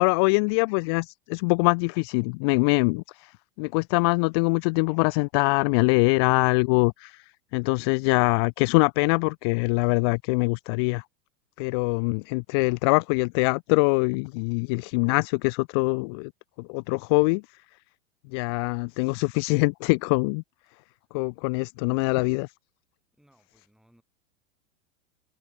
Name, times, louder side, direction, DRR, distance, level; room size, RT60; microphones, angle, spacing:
voice 1, 0.0-3.3 3.6-7.2 7.5-11.0 11.6-16.3 16.6-17.4 18.3-20.4 21.1-22.5, left 32 dB, 20° left, 0.3 m, -23 dB
voice 2, 23.2-24.0, equal, ahead, 6.2 m, -62 dB
figure-of-eight pair, 100°, 39 cm